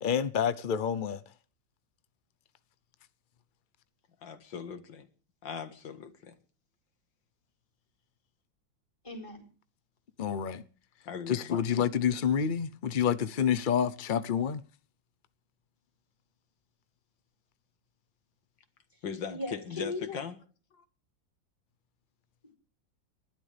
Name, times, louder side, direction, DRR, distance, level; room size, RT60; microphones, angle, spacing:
voice 1, 0.0-1.2 10.2-10.6 11.3-14.6, left 8 dB, 60° left, 0.5 m, -28 dB
voice 2, 4.2-5.1 5.4-6.4 11.1-11.6 19.0-20.4 20.7-20.8, left 7 dB, 80° left, 2.3 m, -39 dB
voice 3, 9.0-9.4 19.3-20.2, left 2 dB, 15° left, 4.7 m, -37 dB
29.5 x 12.0 x 3.4 m
omnidirectional pair, 2.0 m